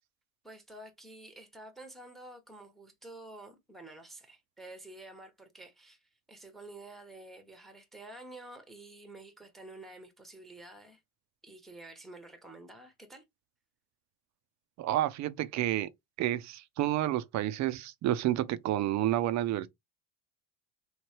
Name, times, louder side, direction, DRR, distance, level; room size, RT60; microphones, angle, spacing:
voice 1, 0.4-11.0 11.4-13.2, right 2 dB, ahead, 0.8 m, -50 dB
voice 2, 14.8-15.9 16.2-19.7, right 13 dB, 40° right, 0.4 m, -30 dB
3.0 x 2.8 x 2.7 m
supercardioid pair, 100°, 48 cm